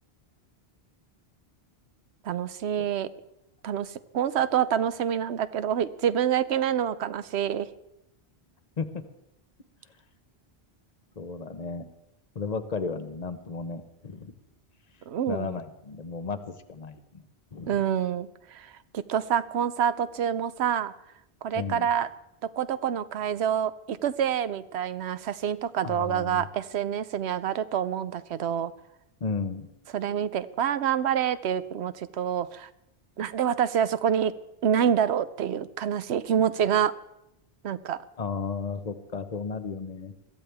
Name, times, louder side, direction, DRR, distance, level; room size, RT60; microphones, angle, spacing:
voice 1, 2.2-3.1 3.6-7.7 15.1-15.6 17.7-20.9 21.4-22.1 22.4-28.7 29.9-32.7 33.2-34.3 34.6-36.9 37.6-38.0, right 9 dB, 90° right, 14 dB, 0.9 m, -27 dB
voice 2, 11.2-11.8 12.3-14.3 15.3-17.2 17.5-17.8 21.5-21.9 25.8-26.5 29.2-29.7 38.2-40.1, left 5 dB, 40° left, 9 dB, 1.0 m, -34 dB
21.5 x 14.0 x 3.4 m, 0.84 s
omnidirectional pair, 1.1 m